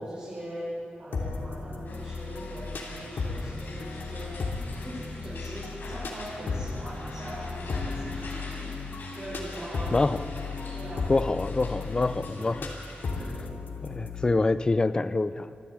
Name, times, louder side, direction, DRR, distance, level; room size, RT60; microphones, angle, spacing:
voice 1, 0.0-8.9 9.1-10.2 10.5-11.1 11.8-12.6 13.1-13.5, right 1 dB, 30° right, -9 dB, 6.7 m, -41 dB
sound 1, 1.1-14.3, left 4 dB, 85° left, 3.0 m, -35 dB
sound 2, 1.8-13.1, left 2 dB, 70° left, 4.6 m, -46 dB
voice 2, 11.1-12.7 13.8-15.5, left 3 dB, 25° left, 13 dB, 0.6 m, -26 dB
26.0 x 14.0 x 8.8 m, 2.7 s
wide cardioid pair, 180°, 3 cm